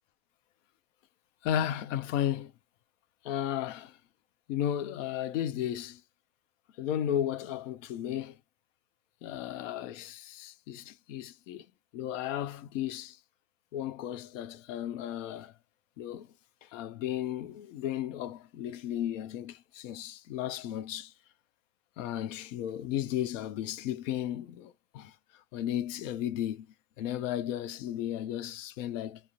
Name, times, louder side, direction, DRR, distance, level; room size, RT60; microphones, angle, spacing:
voice 1, 1.4-2.5 3.2-3.9 4.5-6.0 6.8-8.4 9.2-11.7 11.9-13.2 13.7-15.5 16.0-16.3 16.7-21.1 22.0-25.1 25.5-26.7 27.0-29.2, left 11 dB, 70° left, 0.6 m, -34 dB
2.3 x 2.0 x 2.8 m
supercardioid pair, 145°, 39 cm